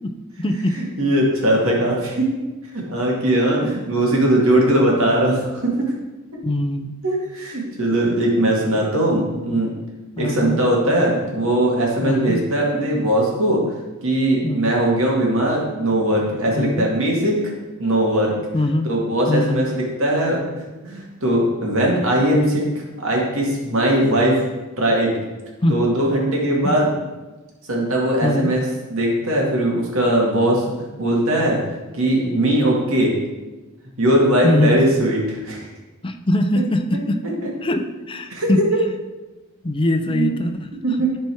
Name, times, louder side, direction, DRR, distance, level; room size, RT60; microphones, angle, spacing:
voice 1, 0.0-0.8 6.4-6.9 10.2-10.6 12.0-12.4 14.4-14.7 16.5-16.9 18.5-18.9 19.3-19.6 25.6-25.8 26.6-26.7 28.2-28.5 34.4-34.8 36.0-37.2 37.6-38.6 39.6-40.7, left 1 dB, 25° left, 7 dB, 0.6 m, -22 dB
voice 2, 0.8-2.3 2.7-5.7 7.0-9.7 10.2-13.6 14.0-17.4 17.8-18.3 18.8-22.6 23.0-24.4 24.8-25.1 25.7-26.9 27.7-28.6 28.9-30.6 31.0-31.6 31.9-33.1 34.0-35.6 38.3-38.5 40.1-40.3 40.8-41.1, right 1 dB, 65° right, -2 dB, 2.2 m, -19 dB
11.5 x 4.4 x 4.6 m, 1.2 s
head